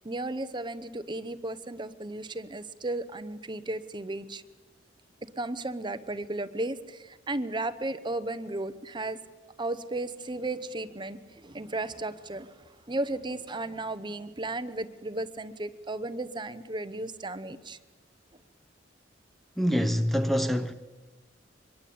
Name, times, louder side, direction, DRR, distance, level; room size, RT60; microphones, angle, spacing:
voice 1, 0.0-4.4 5.2-9.2 9.6-17.8, right 2 dB, 25° right, 0.9 m, -34 dB
voice 2, 19.6-20.7, equal, ahead, 0.8 m, -25 dB
24.5 x 21.0 x 8.7 m
head